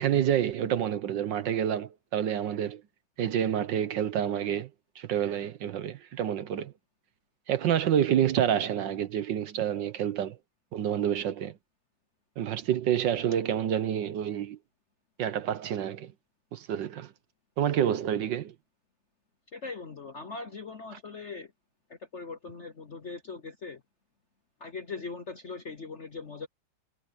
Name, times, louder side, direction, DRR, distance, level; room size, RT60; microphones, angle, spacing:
voice 1, 0.0-2.8 3.2-4.7 5.0-6.7 7.5-10.4 10.7-11.5 12.4-14.6 15.2-16.1 16.5-17.1 17.6-18.5, right 10 dB, 65° right, 1.4 m, -28 dB
voice 2, 19.5-21.5 21.9-23.8 24.6-26.5, left 4 dB, 50° left, 0.9 m, -40 dB
omnidirectional pair, 2.3 m